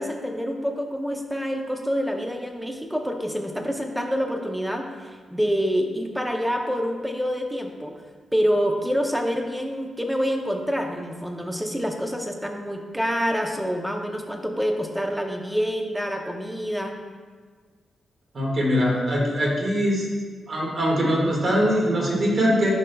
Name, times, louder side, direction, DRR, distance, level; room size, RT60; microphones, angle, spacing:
voice 1, 0.0-8.0 8.3-16.9, equal, 5° right, 3 dB, 0.7 m, -27 dB
voice 2, 18.3-20.1 20.5-22.7, equal, 45° right, -3 dB, 1.8 m, -22 dB
11.0 x 5.3 x 2.3 m, 1.5 s
cardioid pair, 110°, 0 cm